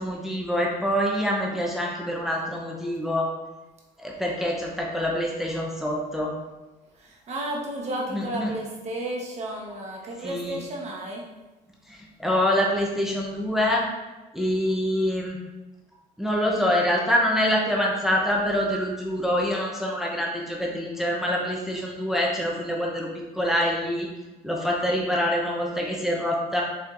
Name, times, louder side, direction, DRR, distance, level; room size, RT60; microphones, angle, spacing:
voice 1, 0.0-3.3 4.0-6.3 8.1-8.5 10.2-10.6 11.9-13.9 14.3-15.4 16.2-24.1 24.4-26.6, equal, ahead, -2 dB, 0.6 m, -25 dB
voice 2, 7.0-11.2, right 1 dB, 40° right, -2 dB, 1.0 m, -33 dB
4.3 x 3.4 x 2.5 m, 1.1 s
cardioid pair, 110°, 17 cm